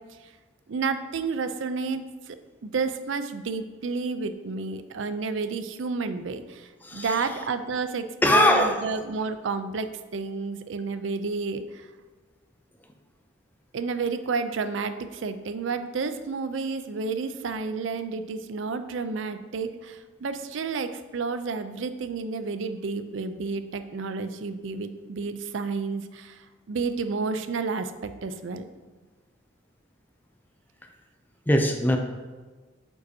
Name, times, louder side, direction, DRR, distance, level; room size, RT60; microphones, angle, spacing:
voice 1, 0.7-2.4 2.6-11.9 13.7-28.6, right 4 dB, 70° right, 10 dB, 0.5 m, -31 dB
voice 2, 6.8-7.3 8.2-9.0 31.5-32.0, left 1 dB, 10° left, 5 dB, 0.4 m, -22 dB
8.4 x 5.3 x 2.7 m, 1.3 s
head